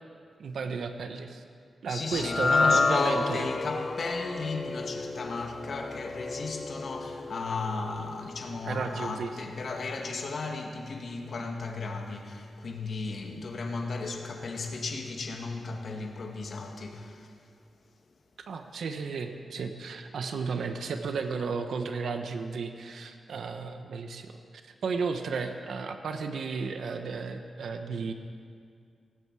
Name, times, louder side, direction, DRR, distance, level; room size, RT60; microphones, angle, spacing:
voice 1, 0.4-1.4 1.8-3.5 8.7-9.3 18.5-28.1, right 5 dB, 85° right, 6 dB, 1.0 m, -33 dB
voice 2, 1.9-17.3, left 3 dB, 60° left, 2 dB, 2.0 m, -35 dB
sound 1, 2.1-8.5, left 4 dB, 40° left, 0.6 m, -30 dB
18.5 x 16.0 x 4.8 m, 2.2 s
wide cardioid pair, 105°, 0 cm